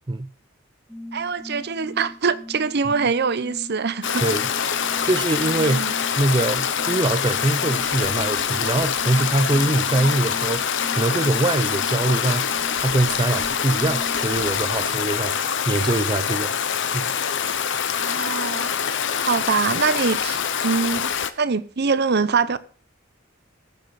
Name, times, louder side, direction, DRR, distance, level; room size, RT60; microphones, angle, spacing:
sound 1, 0.9-15.3, left 1 dB, ahead, 1.4 m, -40 dB
voice 1, 1.1-4.2 5.6-5.9 18.0-18.8 19.2-21.1 21.4-22.6, right 5 dB, 55° right, 0.7 m, -23 dB
Stream, 4.0-21.3, left 7 dB, 65° left, 0.9 m, -25 dB
voice 2, 5.0-5.9 6.2-16.5 16.9-17.1, right 2 dB, 25° right, 0.5 m, -23 dB
19.0 x 7.6 x 4.1 m
head